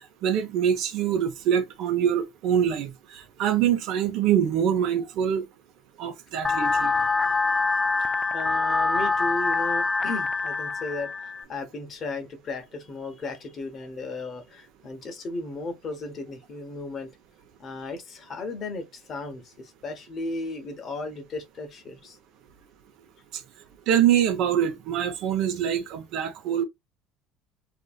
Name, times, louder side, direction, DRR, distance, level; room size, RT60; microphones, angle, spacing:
voice 1, 0.2-5.5 6.0-6.9 23.9-26.6, right 9 dB, 65° right, 0.8 m, -24 dB
sound 1, 6.4-11.4, left 4 dB, 20° left, 0.3 m, -25 dB
voice 2, 8.3-17.1 17.6-22.2, left 3 dB, 45° left, 1.0 m, -35 dB
2.7 x 2.6 x 2.4 m
hypercardioid pair, 75°, 0 cm